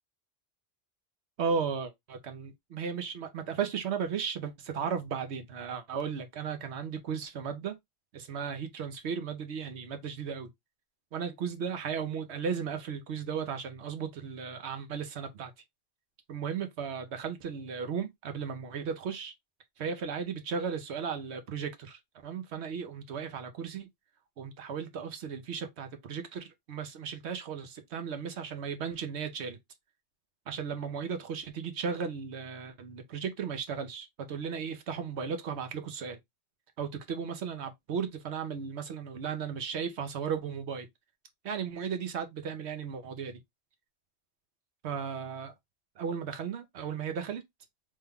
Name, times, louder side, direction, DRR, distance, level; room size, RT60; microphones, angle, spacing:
voice 1, 1.4-7.8 8.1-10.5 11.1-15.5 16.3-19.3 19.8-23.9 24.4-29.6 30.5-36.2 36.8-40.9 41.4-43.4 44.8-45.5 46.0-47.4, right 6 dB, 70° right, 1.0 m, -35 dB
3.3 x 2.2 x 3.5 m
omnidirectional pair, 1.2 m